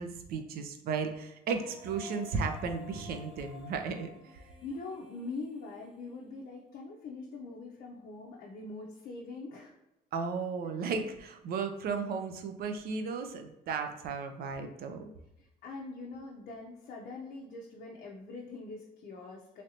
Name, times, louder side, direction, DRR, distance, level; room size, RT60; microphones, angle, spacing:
voice 1, 0.0-4.4 10.1-15.1, right 5 dB, 65° right, 6 dB, 0.5 m, -35 dB
Female singing, 1.4-6.6, left 7 dB, 5° right, 1.0 m, -52 dB
voice 2, 4.6-9.7 15.4-19.6, left 3 dB, 55° left, -1 dB, 0.5 m, -43 dB
3.2 x 2.6 x 2.8 m, 0.91 s
cardioid pair, 110°, 17 cm